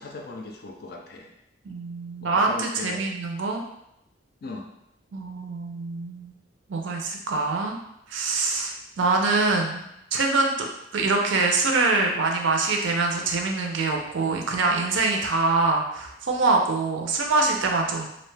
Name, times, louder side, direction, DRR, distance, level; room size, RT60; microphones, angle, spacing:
voice 1, 0.0-1.3 2.2-3.0 4.4-4.7, left 3 dB, 50° left, 1 dB, 0.4 m, -38 dB
voice 2, 1.6-3.6 5.1-6.3 6.7-7.8 8.1-9.8 10.1-10.5 10.9-18.1, right 3 dB, 70° right, 2 dB, 0.5 m, -24 dB
2.5 x 2.1 x 3.2 m, 0.80 s
head